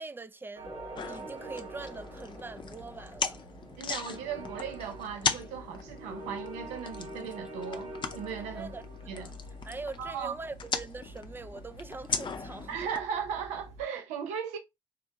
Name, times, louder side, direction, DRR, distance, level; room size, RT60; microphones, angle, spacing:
voice 1, 0.0-3.4 8.5-9.4 9.6-12.9, right 3 dB, 20° right, 0.4 m, -43 dB
sound 1, 0.5-13.8, right 1 dB, 65° right, 1.0 m, -46 dB
sound 2, 0.6-7.6, equal, ahead, 0.8 m, -52 dB
sound 3, 0.9-13.0, left 5 dB, 45° left, 0.6 m, -38 dB
voice 2, 3.8-8.7 9.1-9.3 10.0-10.3 12.7-14.6, right 7 dB, 90° right, 0.6 m, -37 dB
3.7 x 2.2 x 2.7 m
supercardioid pair, 60°, 11 cm